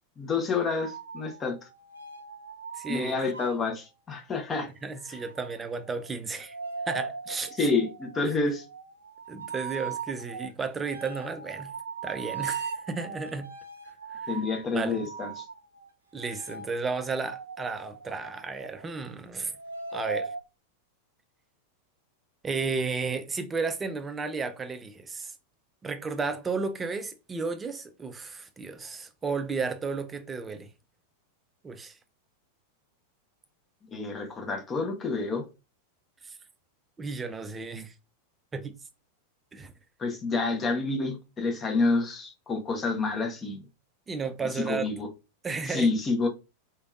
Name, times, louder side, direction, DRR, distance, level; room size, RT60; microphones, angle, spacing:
voice 1, 0.2-1.6 2.9-4.7 5.1-5.2 7.6-8.6 14.3-15.4 33.9-35.4 40.0-43.6 44.5-45.1 45.7-46.3, left 3 dB, 20° left, 1.1 m, -28 dB
sound 1, 0.6-3.7 5.0-19.0 19.5-20.4, right 5 dB, 75° right, 0.6 m, -40 dB
voice 2, 2.7-3.2 4.8-6.6 6.9-7.7 8.3-8.4 9.3-11.7 12.0-13.5 14.1-14.3 14.7-15.0 16.1-19.5 19.9-20.3 22.4-25.3 25.8-30.7 31.6-32.0 36.2-36.4 37.0-37.9 38.5-38.8 39.5-39.7 44.1-44.9 45.4-45.9, right 4 dB, 15° right, 0.6 m, -33 dB
4.4 x 3.4 x 2.5 m
figure-of-eight pair, 90°, 0 cm